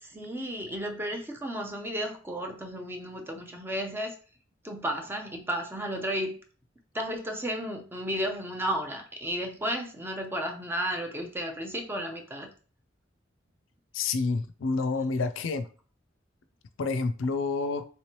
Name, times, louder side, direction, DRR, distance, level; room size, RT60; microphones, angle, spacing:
voice 1, 0.0-4.1 4.6-6.3 6.9-12.5, equal, 10° right, 4 dB, 0.5 m, -33 dB
voice 2, 13.9-15.6 16.8-17.9, left 4 dB, 90° left, 10 dB, 0.4 m, -28 dB
3.2 x 3.1 x 2.9 m, 0.39 s
head